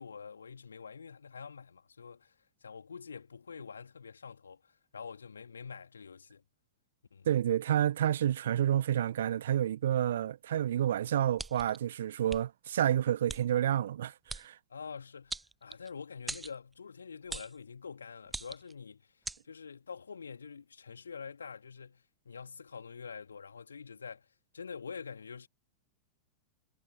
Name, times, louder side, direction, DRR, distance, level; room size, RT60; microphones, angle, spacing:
voice 1, 0.0-6.4 7.1-7.3 14.7-24.3 24.5-25.5, left 6 dB, 75° left, 2.9 m, -46 dB
voice 2, 7.2-14.6, right 11 dB, 60° right, 1.1 m, -29 dB
sound 1, 11.4-11.8 12.3-12.4 13.3-13.4 14.3-14.5 15.3-15.9 16.3-16.5 17.3-17.6 18.3-18.7 19.2-19.4, right 3 dB, 10° right, 0.3 m, -40 dB
figure-of-eight pair, 90°, 0 cm